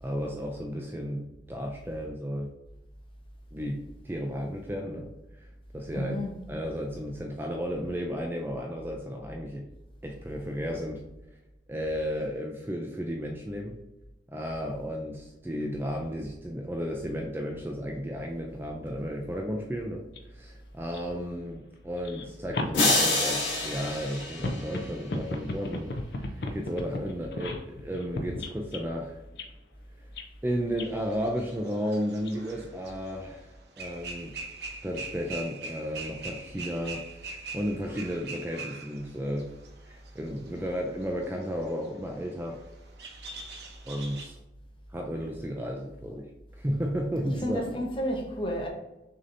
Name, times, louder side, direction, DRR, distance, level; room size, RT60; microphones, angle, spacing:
voice 1, 0.0-2.5 3.5-5.1 5.3-5.5 5.7-9.7 10.0-11.0 11.7-13.8 14.3-20.0 20.3-25.9 26.2-29.2 30.4-34.3 34.8-39.5 39.8-42.6 43.9-44.4 44.9-46.3 46.5-47.7, equal, 10° right, 1 dB, 0.3 m, -33 dB
voice 2, 5.9-6.3 47.2-48.7, equal, 30° left, 1 dB, 0.7 m, -32 dB
sound 1, 20.2-20.3 20.8-21.0 22.0-28.8 29.3-29.5 30.2-30.3 30.8-31.0 32.2-32.3 32.9-33.0, left 2 dB, 60° left, 0.5 m, -36 dB
sound 2, 22.7-25.1, left 2 dB, 85° left, 1.5 m, -27 dB
sound 3, 31.1-33.4 33.8-44.3, right 3 dB, 65° right, 0.8 m, -42 dB
6.3 x 2.8 x 2.6 m, 0.99 s
head